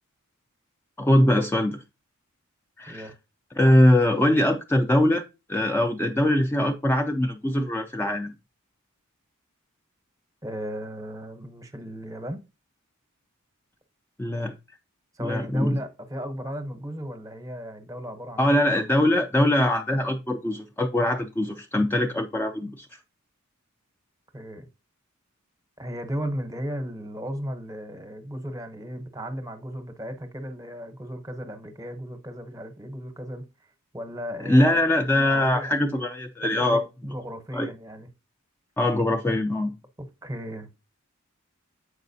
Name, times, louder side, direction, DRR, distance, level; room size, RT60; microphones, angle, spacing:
voice 1, 1.0-1.8 2.8-3.1 3.6-5.2 5.5-8.3 14.2-14.5 15.2-15.8 18.4-22.9 34.4-36.8 37.5-37.7 38.8-39.7, left 1 dB, 10° left, 0.3 m, -22 dB
voice 2, 10.4-12.4 15.1-18.6 24.3-24.7 25.8-33.4 33.9-34.8 35.3-35.8 36.4-38.1 40.2-40.7, equal, 15° right, 0.7 m, -35 dB
7.2 x 4.9 x 2.7 m
head